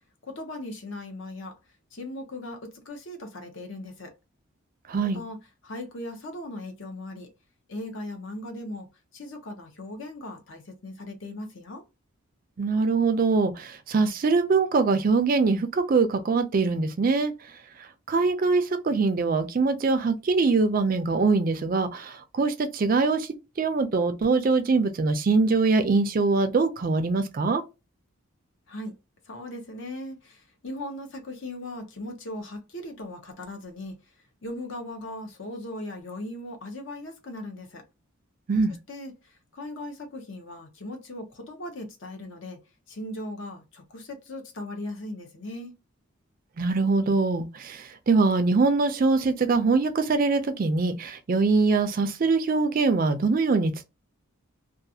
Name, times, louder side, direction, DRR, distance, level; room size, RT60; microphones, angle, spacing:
voice 1, 0.2-1.6 1.9-4.1 5.0-5.4 5.6-7.3 7.7-8.9 9.1-11.8 28.7-29.0 29.3-34.0 34.4-37.8 38.9-42.6 42.9-45.7, left 1 dB, 60° left, 0.7 m, -38 dB
voice 2, 4.9-5.2 12.6-17.3 17.8-23.3 23.6-27.6 38.5-38.7 46.6-53.8, right 4 dB, 40° right, 0.4 m, -23 dB
2.4 x 2.4 x 2.7 m
head